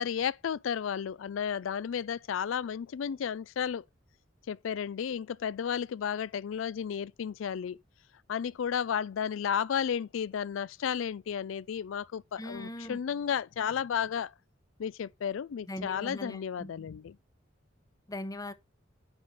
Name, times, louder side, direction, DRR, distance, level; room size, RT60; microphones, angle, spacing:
voice 1, 0.0-3.8 4.5-7.8 8.3-14.3 14.8-17.2, left 8 dB, 70° left, 0.4 m, -33 dB
voice 2, 12.4-13.0 15.7-16.7 18.1-18.5, left 1 dB, 20° left, 0.8 m, -40 dB
9.7 x 3.3 x 5.4 m
head